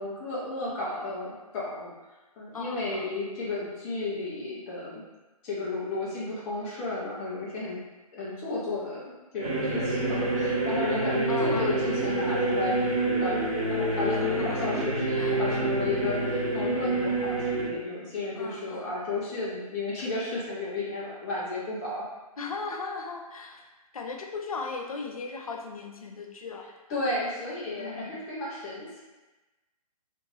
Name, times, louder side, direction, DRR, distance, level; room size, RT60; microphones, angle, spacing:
voice 1, 0.0-1.9 2.4-5.0 5.4-7.8 8.1-12.8 13.2-13.4 13.7-22.0 26.9-29.0, left 2 dB, 10° left, -7 dB, 0.3 m, -33 dB
voice 2, 2.5-3.1 11.3-11.8 14.1-14.9 15.1-15.6 18.3-18.9 22.4-23.6 23.9-26.7 27.8-28.1, left 4 dB, 65° left, 2 dB, 0.5 m, -37 dB
sound 1, 9.4-17.7, right 2 dB, 80° right, 1.0 m, -27 dB
3.1 x 2.2 x 3.0 m, 1.1 s
figure-of-eight pair, 130°, 19 cm